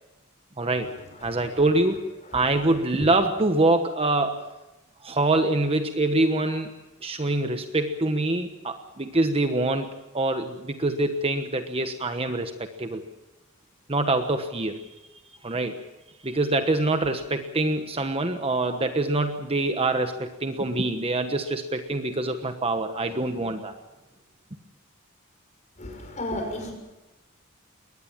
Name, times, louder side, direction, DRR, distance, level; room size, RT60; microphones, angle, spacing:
voice 1, 0.6-0.9 1.2-2.0 2.3-4.4 5.0-6.7 7.0-13.0 13.9-14.8 15.4-15.8 16.2-23.7, right 2 dB, 25° right, 7 dB, 1.2 m, -25 dB
voice 2, 25.8-26.7, left 1 dB, 35° left, 3 dB, 6.2 m, -32 dB
22.5 x 19.5 x 7.4 m, 1.0 s
head